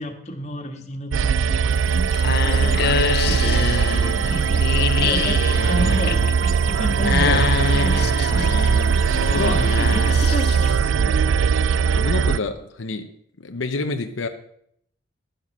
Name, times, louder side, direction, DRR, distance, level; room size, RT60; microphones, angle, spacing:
voice 1, 0.0-11.3, equal, 35° left, 3 dB, 1.6 m, -32 dB
sound 1, 1.1-12.4, right 6 dB, 80° right, 0.4 m, -20 dB
sound 2, 1.7-10.8, left 7 dB, 55° left, 0.4 m, -26 dB
voice 2, 9.3-9.7 12.0-13.1 13.4-14.3, left 3 dB, 85° left, 6 dB, 0.8 m, -27 dB
12.5 x 7.5 x 5.6 m, 0.70 s
head